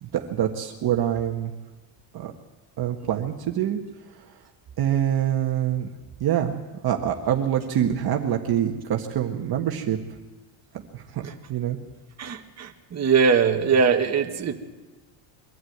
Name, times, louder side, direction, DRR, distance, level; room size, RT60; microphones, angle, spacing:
voice 1, 0.0-1.5 2.1-2.3 2.8-3.8 4.8-5.9 6.2-10.0 10.9-11.8, right 10 dB, 45° right, 3 dB, 1.6 m, -25 dB
voice 2, 12.2-14.6, right 6 dB, 30° right, 3 dB, 1.8 m, -21 dB
23.0 x 12.5 x 9.5 m, 1.2 s
cardioid pair, 125°, 50 cm